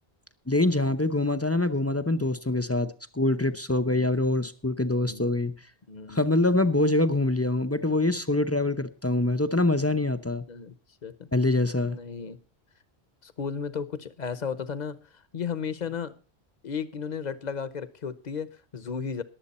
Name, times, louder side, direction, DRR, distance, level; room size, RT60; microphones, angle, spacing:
voice 1, 0.5-5.5 6.1-10.4 11.3-12.0, left 2 dB, 15° left, 10 dB, 0.6 m, -25 dB
voice 2, 4.9-5.3 5.9-6.2 10.5-10.7 11.0-11.3 11.9-12.4 13.2-16.1 16.6-19.2, left 6 dB, 45° left, 15 dB, 0.9 m, -34 dB
21.5 x 7.8 x 4.2 m, 0.35 s
omnidirectional pair, 1.1 m